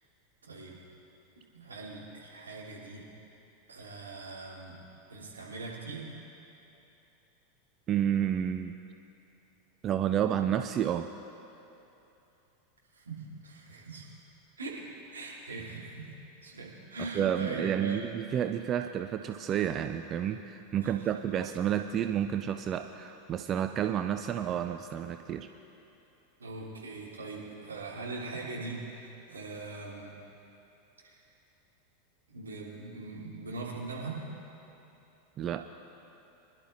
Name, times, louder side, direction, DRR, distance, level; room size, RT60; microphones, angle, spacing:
voice 1, 0.4-0.8 1.5-3.0 3.7-4.8 5.1-6.0 12.9-14.1 14.6-14.8 15.1-16.1 16.4-18.0 20.8-21.4 26.4-30.1 31.0-31.2 32.3-34.2, right 3 dB, 80° right, -6 dB, 3.0 m, -41 dB
voice 2, 7.9-8.8 9.8-11.1 17.0-25.5 35.4-35.7, right 9 dB, 35° right, 8 dB, 0.4 m, -30 dB
24.5 x 11.5 x 2.6 m, 3.0 s
figure-of-eight pair, 85°, 0 cm